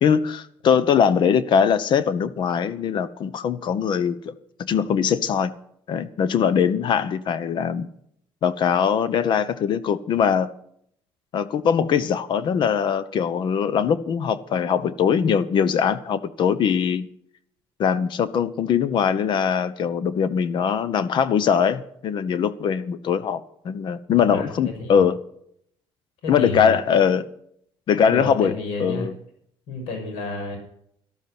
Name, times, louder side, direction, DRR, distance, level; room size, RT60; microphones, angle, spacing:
voice 1, 0.0-4.3 4.6-5.5 5.9-7.9 8.4-10.5 11.3-17.1 17.8-25.2 26.3-27.3 27.9-28.5 28.8-29.1, left 7 dB, 50° left, 15 dB, 1.0 m, -21 dB
voice 2, 26.2-27.1 28.0-29.1 29.7-30.6, left 3 dB, 85° left, 3 dB, 6.2 m, -31 dB
13.0 x 13.0 x 6.0 m, 0.68 s
cardioid pair, 130°, 10 cm